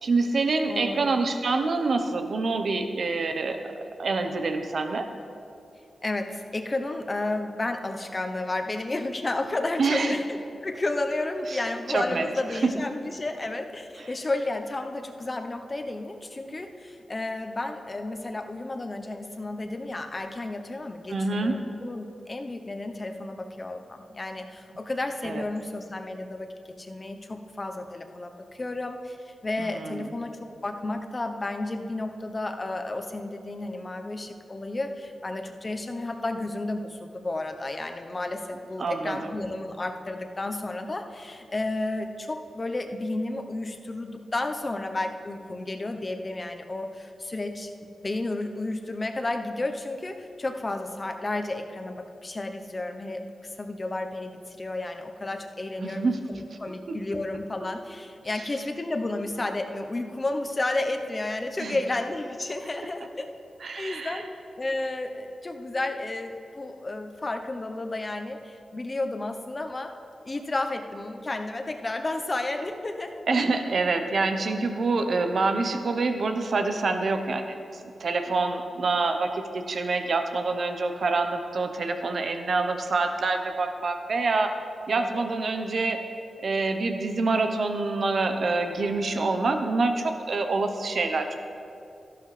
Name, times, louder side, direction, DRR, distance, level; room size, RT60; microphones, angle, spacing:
voice 1, 0.0-3.6 4.0-5.1 9.8-10.2 11.5-11.6 11.9-12.3 12.6-12.8 21.1-21.6 25.2-25.4 29.6-30.1 38.8-39.4 55.8-56.2 56.9-57.0 61.6-61.8 63.6-64.2 73.3-77.6 78.0-84.5 84.9-86.0 86.4-91.5, right 3 dB, 65° right, 6 dB, 0.9 m, -26 dB
voice 2, 0.7-1.1 6.0-26.5 26.8-63.2 63.8-64.3 64.6-69.9 70.2-73.2 84.9-85.2, left 2 dB, 35° left, 5 dB, 0.9 m, -32 dB
13.0 x 11.5 x 3.3 m, 2.6 s
cardioid pair, 65°, 0 cm